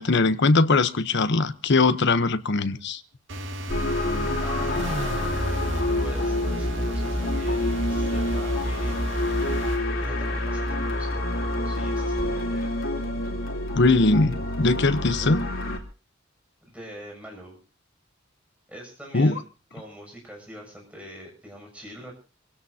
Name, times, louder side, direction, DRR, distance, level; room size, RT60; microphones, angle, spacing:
voice 1, 0.0-3.0 13.7-15.4 19.1-19.3, left 3 dB, 60° left, 13 dB, 0.9 m, -21 dB
sound 1, 3.3-9.8, right 1 dB, 65° right, 2.2 m, -33 dB
sound 2, 3.7-15.8, left 1 dB, 85° left, 3.0 m, -27 dB
voice 2, 4.4-5.4 6.0-9.0 10.0-12.9 16.7-17.6 18.7-19.4 19.7-22.1, equal, 5° right, 0 dB, 7.0 m, -43 dB
26.0 x 17.0 x 2.8 m, 0.34 s
head